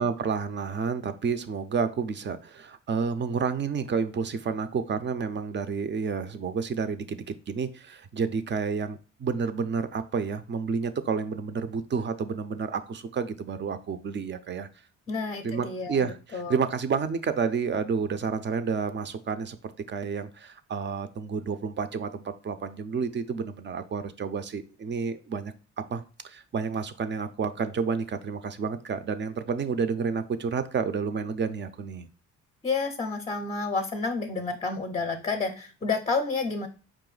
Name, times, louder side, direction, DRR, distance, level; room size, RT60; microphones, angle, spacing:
voice 1, 0.0-14.7 15.4-19.6 19.9-25.5 25.9-32.1, right 5 dB, 40° right, 10 dB, 0.6 m, -30 dB
voice 2, 15.1-16.6 32.6-36.7, left 4 dB, 20° left, 4 dB, 0.6 m, -30 dB
4.9 x 2.6 x 3.9 m, 0.36 s
cardioid pair, 90°, 30 cm